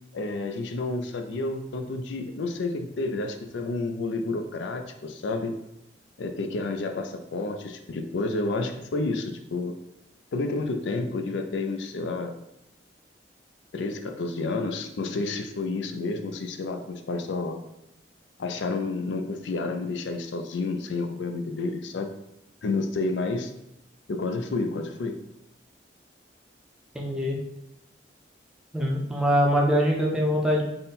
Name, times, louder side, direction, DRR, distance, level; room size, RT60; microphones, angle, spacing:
voice 1, 0.1-5.5 6.2-9.8 10.3-12.3 13.7-17.6 18.4-22.1 22.6-23.5 24.1-25.2, left 3 dB, 80° left, 6 dB, 0.4 m, -30 dB
voice 2, 26.9-27.4 28.7-30.6, equal, 5° right, -2 dB, 0.5 m, -23 dB
3.7 x 2.1 x 4.1 m, 0.85 s
head